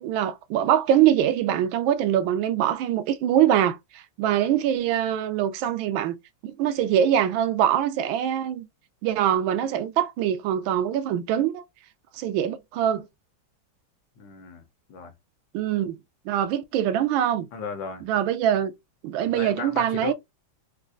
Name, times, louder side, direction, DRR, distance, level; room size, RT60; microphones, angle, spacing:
voice 1, 0.0-6.1 6.4-8.7 9.0-11.6 12.1-13.0 15.5-16.0 16.3-17.5 18.1-18.7 19.0-20.1, right 10 dB, 90° right, 1.4 m, -23 dB
voice 2, 14.2-14.6 14.9-15.1 17.5-18.0 19.2-20.1, left 6 dB, 80° left, 1.6 m, -35 dB
4.2 x 2.5 x 2.4 m
omnidirectional pair, 2.1 m